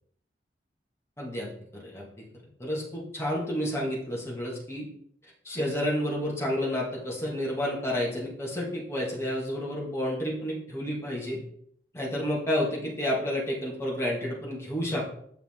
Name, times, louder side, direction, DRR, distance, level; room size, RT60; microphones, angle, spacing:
voice 1, 1.2-2.3 2.6-4.9 5.4-11.4 11.9-15.1, left 1 dB, 15° left, -4 dB, 2.2 m, -30 dB
9.0 x 5.6 x 3.8 m, 0.67 s
head